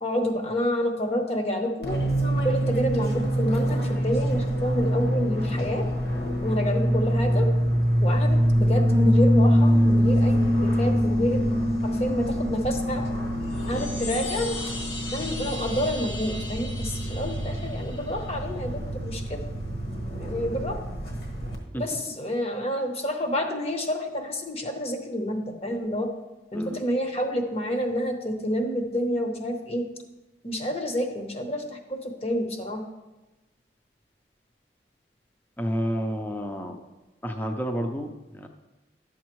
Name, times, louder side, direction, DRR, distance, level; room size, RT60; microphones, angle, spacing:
voice 1, 0.0-2.0 2.4-5.9 6.4-7.5 8.0-11.5 11.8-13.0 13.7-14.5 15.1-19.4 20.2-20.8 21.7-26.1 26.5-29.8 30.4-32.8, equal, 35° left, 4 dB, 0.9 m, -29 dB
Fixed-wing aircraft airplane, 1.8-21.5, equal, 55° left, 1.5 m, -25 dB
Piano, 8.9-17.4, left 1 dB, 35° right, 0.8 m, -27 dB
sound 1, 13.4-18.5, left 2 dB, 75° left, 1.7 m, -39 dB
voice 2, 26.5-26.8 35.6-36.8 37.2-38.5, equal, 10° left, 4 dB, 0.5 m, -30 dB
11.5 x 7.2 x 3.1 m, 1.1 s
head